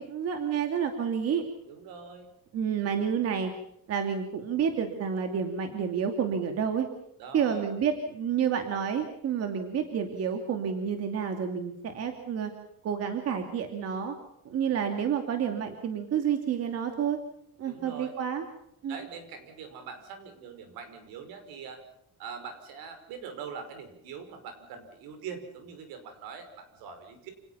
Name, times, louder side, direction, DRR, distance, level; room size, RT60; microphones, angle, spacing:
voice 1, 0.0-1.4 2.5-3.5 3.9-6.9 7.3-12.5 12.8-14.1 14.4-17.2 17.6-18.4 18.8-19.0, right 7 dB, 45° right, 5 dB, 2.5 m, -29 dB
voice 2, 1.6-2.3 7.2-7.7 17.7-18.1 18.9-21.8 22.2-27.3, right 6 dB, 80° right, 8 dB, 5.6 m, -43 dB
29.0 x 18.5 x 5.8 m, 0.73 s
cardioid pair, 175°, 35 cm